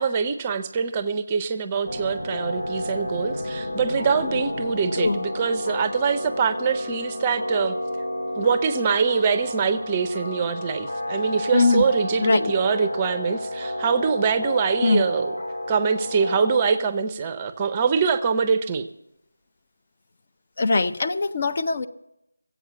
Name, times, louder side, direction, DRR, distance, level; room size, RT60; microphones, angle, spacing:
voice 1, 0.0-7.8 8.4-15.3 15.7-18.9, right 5 dB, 20° right, 10 dB, 0.5 m, -24 dB
sound 1, 1.9-16.8, left 1 dB, 65° left, 2.1 m, -31 dB
voice 2, 11.5-11.8 12.2-12.5 14.8-15.1 20.6-21.9, left 3 dB, 40° left, 8 dB, 0.6 m, -21 dB
15.5 x 8.3 x 7.3 m, 0.87 s
figure-of-eight pair, 165°, 0 cm